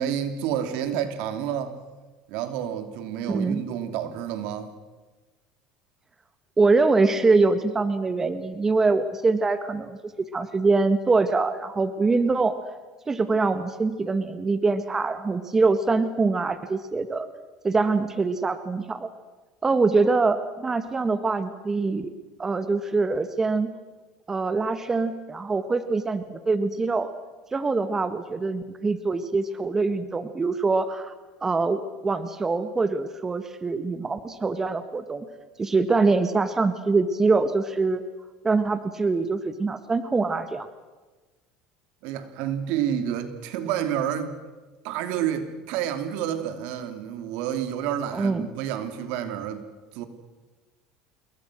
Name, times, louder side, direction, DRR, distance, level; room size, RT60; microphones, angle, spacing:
voice 1, 0.0-1.8 2.3-4.7 42.0-44.4 44.8-49.6 49.9-50.0, right 9 dB, 70° right, 8 dB, 3.0 m, -29 dB
voice 2, 3.3-3.6 6.6-10.0 10.3-12.5 13.1-17.3 17.6-19.1 19.6-22.1 22.4-23.7 24.3-27.1 27.5-31.1 31.4-35.3 35.6-38.0 38.4-40.7 48.1-48.5, right 3 dB, 20° right, 10 dB, 1.7 m, -24 dB
27.5 x 22.5 x 6.4 m, 1.2 s
supercardioid pair, 100°, 2 cm